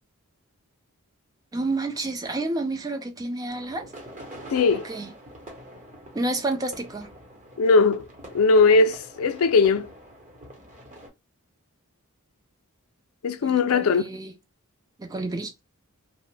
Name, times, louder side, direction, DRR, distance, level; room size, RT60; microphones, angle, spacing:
voice 1, 1.5-3.9 4.8-5.1 6.1-7.1 13.4-14.3 15.0-15.5, right 2 dB, 15° right, 0.4 m, -30 dB
sound 1, 3.5-11.1, right 1 dB, 35° right, 0.8 m, -45 dB
voice 2, 4.5-4.9 7.6-8.1 8.3-9.9 13.2-14.1, left 4 dB, 75° left, 0.4 m, -19 dB
2.8 x 2.0 x 3.2 m
head